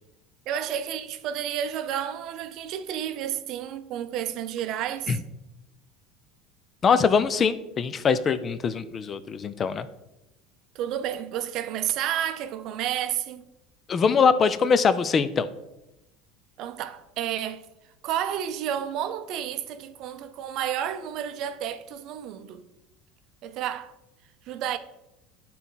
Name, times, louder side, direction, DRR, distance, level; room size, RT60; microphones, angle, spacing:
voice 1, 0.5-5.2 10.7-13.4 16.6-17.6 18.0-22.6 23.4-23.9 24.5-24.8, right 10 dB, 55° right, 0.6 m, -31 dB
voice 2, 6.8-9.9 13.9-15.5, left 5 dB, 30° left, 0.5 m, -22 dB
10.5 x 4.2 x 4.0 m
supercardioid pair, 130°, 0 cm